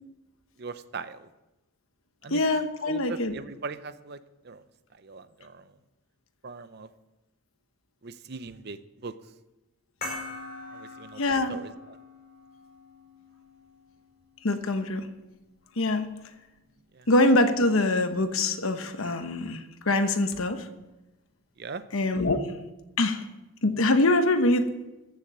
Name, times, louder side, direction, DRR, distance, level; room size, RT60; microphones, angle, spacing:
voice 1, 0.6-1.3 2.2-2.4 2.8-4.2 4.4-4.6 4.9-5.7 6.4-6.9 8.0-9.1 10.7-12.0 16.9-17.1 21.6-21.8, right 4 dB, 45° right, 13 dB, 0.6 m, -40 dB
voice 2, 2.3-3.3 11.2-11.6 14.4-15.1 15.8-16.1 17.1-20.7 21.9-22.5 23.0-23.2 23.6-24.7, left 2 dB, 70° left, 9 dB, 1.1 m, -24 dB
sound 1, 10.0-15.1, left 2 dB, 40° left, 5.2 m, -43 dB
14.5 x 6.9 x 7.6 m, 1.0 s
head